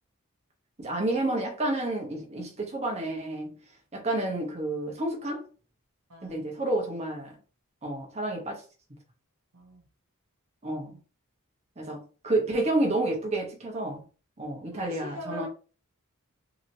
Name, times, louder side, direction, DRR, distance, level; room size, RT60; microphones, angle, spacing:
voice 1, 0.8-3.6 3.9-5.5 6.2-7.4 7.8-8.6 10.6-11.0 11.8-14.0 14.4-15.5, right 2 dB, 30° right, 0.9 m, -30 dB
voice 2, 6.1-6.5 9.5-9.9 14.7-15.5, right 1 dB, 75° right, 0.8 m, -42 dB
2.8 x 2.8 x 2.7 m
head